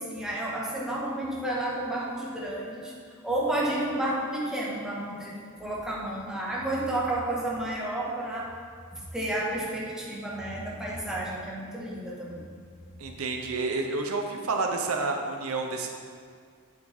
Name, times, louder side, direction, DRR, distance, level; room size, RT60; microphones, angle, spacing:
voice 1, 0.0-2.9 3.2-8.5 8.9-12.4 12.8-13.0, right 1 dB, 5° right, -6 dB, 1.5 m, -31 dB
voice 2, 13.0-15.9, right 3 dB, 70° right, 3 dB, 0.8 m, -29 dB
8.7 x 7.8 x 3.6 m, 2.1 s
head